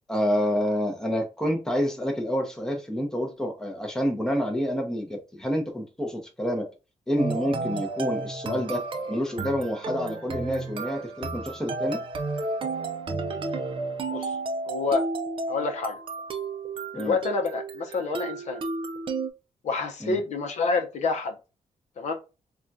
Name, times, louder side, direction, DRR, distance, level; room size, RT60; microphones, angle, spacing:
voice 1, 0.1-6.7 7.1-12.0 16.9-17.1 20.0-20.2, equal, 5° left, 2 dB, 0.6 m, -28 dB
sound 1, 7.2-19.3, right 3 dB, 40° right, 0.4 m, -32 dB
voice 2, 14.7-15.0 15.5-16.0 16.9-18.6 19.6-21.3 22.0-22.1, left 4 dB, 60° left, 4 dB, 0.6 m, -28 dB
3.5 x 2.3 x 2.6 m, 0.29 s
wide cardioid pair, 155°, 13 cm